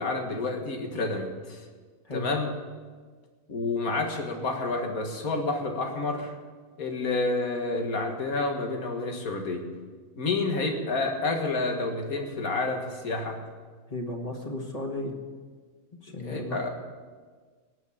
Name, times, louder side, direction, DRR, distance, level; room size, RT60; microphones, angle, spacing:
voice 1, 0.0-1.7 2.1-2.5 3.5-6.3 6.8-9.7 10.2-13.4 16.2-16.7, left 3 dB, 85° left, 3 dB, 2.2 m, -29 dB
voice 2, 13.9-15.1 16.0-16.6, left 2 dB, 25° left, 2 dB, 1.8 m, -34 dB
18.0 x 6.3 x 8.7 m, 1.5 s
omnidirectional pair, 1.5 m